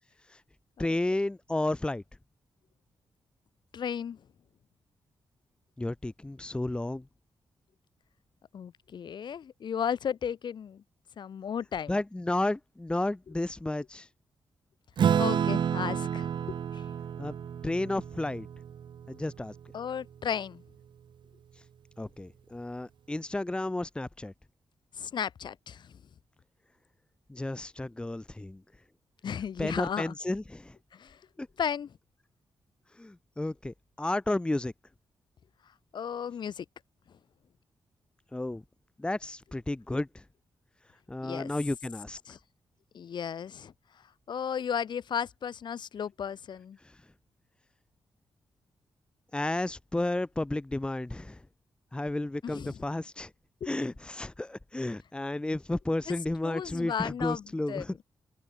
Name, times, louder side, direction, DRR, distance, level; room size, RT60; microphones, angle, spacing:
voice 1, 0.8-2.0 5.8-7.0 11.9-14.1 17.2-17.3 17.6-18.5 19.1-19.5 22.0-24.3 27.3-28.6 29.6-30.8 31.4-31.5 33.0-34.7 38.3-38.6 39.0-40.2 41.1-42.2 46.8-46.9 49.3-51.4 51.9-53.3 53.7-58.0, left 2 dB, 10° left, 2.1 m, -32 dB
voice 2, 3.7-4.2 8.5-10.8 11.2-12.0 15.2-16.8 19.7-20.6 25.0-25.9 29.2-30.1 30.9-31.2 31.6-31.9 35.9-36.6 41.2-41.5 42.3-42.4 42.9-43.7 44.3-46.8 52.4-52.7 53.6-53.7 56.1-56.2 56.4-57.8, left 8 dB, 60° left, 6.6 m, -34 dB
Acoustic guitar / Strum, 15.0-19.8, right 8 dB, 65° right, 1.6 m, -30 dB
open air
wide cardioid pair, 155°, 8 cm